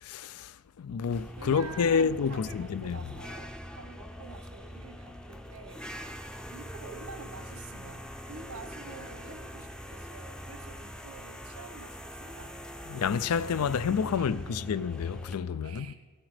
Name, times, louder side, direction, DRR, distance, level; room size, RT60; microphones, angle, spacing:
voice 1, 0.0-3.0 12.9-15.9, left 6 dB, 85° left, 0.4 m, -29 dB
sound 1, 1.1-15.3, equal, 5° left, 0.5 m, -43 dB
voice 2, 1.4-5.8 6.5-13.0 13.4-14.5 15.6-16.0, right 3 dB, 85° right, 1.1 m, -48 dB
16.5 x 7.4 x 5.0 m
head